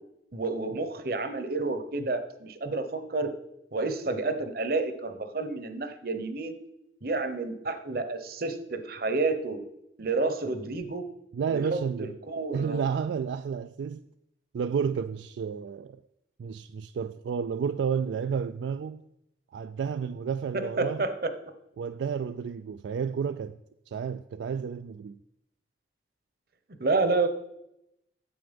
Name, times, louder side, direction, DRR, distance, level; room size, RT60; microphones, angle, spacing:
voice 1, 0.3-3.3 3.7-6.6 7.0-9.6 10.0-11.1 11.5-12.8 20.8-21.3 26.8-27.3, right 3 dB, 55° right, 0.9 m, -30 dB
voice 2, 11.3-12.2 12.5-14.1 14.5-16.0 16.4-19.0 19.5-21.1 21.8-23.6 23.9-25.2, right 6 dB, 80° right, 0.3 m, -31 dB
9.1 x 7.7 x 5.3 m
head